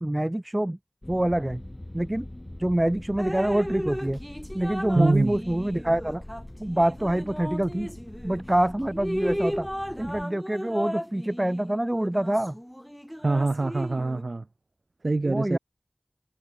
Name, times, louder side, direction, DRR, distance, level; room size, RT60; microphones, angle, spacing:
voice 1, 0.0-0.8 1.1-1.6 1.9-2.3 2.6-4.2 4.5-6.2 6.6-7.9 8.2-9.7 10.0-12.5 15.2-15.6, right 1 dB, 25° right, 0.9 m, -26 dB
sound 1, 1.0-10.2, left 1 dB, 30° left, 7.4 m, -43 dB
Drip, 3.2-8.4 8.9-14.2, equal, 5° left, 2.5 m, -35 dB
voice 2, 4.9-5.3 13.2-14.5 15.0-15.6, right 3 dB, 85° right, 1.0 m, -24 dB
wide cardioid pair, 45°, 0 cm